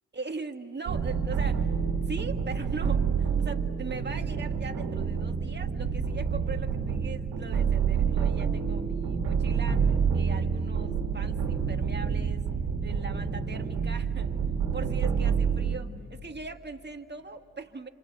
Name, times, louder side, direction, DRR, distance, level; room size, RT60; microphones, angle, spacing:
voice 1, 0.1-9.8 10.1-12.4 12.8-14.4 14.7-17.9, right 4 dB, 30° right, 5 dB, 1.9 m, -40 dB
sound 1, 0.8-15.8, right 6 dB, 90° right, 2.2 m, -28 dB
27.0 x 26.5 x 8.1 m, 2.5 s
supercardioid pair, 55°, 37 cm